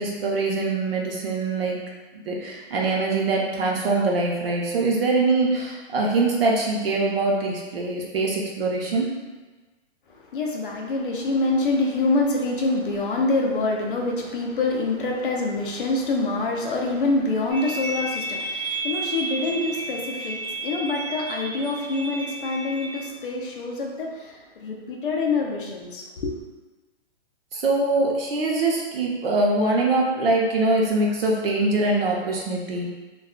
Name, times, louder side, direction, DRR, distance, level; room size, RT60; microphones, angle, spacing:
voice 1, 0.0-1.8 2.1-9.1 27.5-32.9, right 2 dB, 60° right, -1 dB, 0.7 m, -23 dB
voice 2, 10.3-26.3, left 2 dB, 50° left, 0 dB, 0.5 m, -26 dB
sound 1, 17.5-23.1, right 2 dB, 10° right, 0.7 m, -32 dB
2.3 x 2.2 x 3.5 m, 1.2 s
hypercardioid pair, 170°, 34 cm